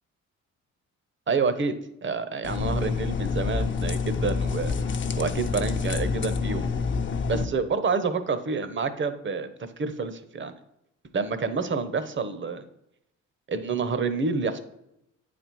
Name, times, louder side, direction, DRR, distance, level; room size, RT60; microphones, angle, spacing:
voice 1, 1.3-1.7 2.0-4.8 5.2-6.8 7.3-9.5 9.8-10.5 11.1-12.6 13.5-14.6, right 4 dB, 40° right, 11 dB, 0.9 m, -28 dB
sound 1, 2.4-7.4, left 5 dB, 40° left, 0.7 m, -27 dB
8.8 x 4.3 x 4.6 m, 0.83 s
cardioid pair, 85°, 31 cm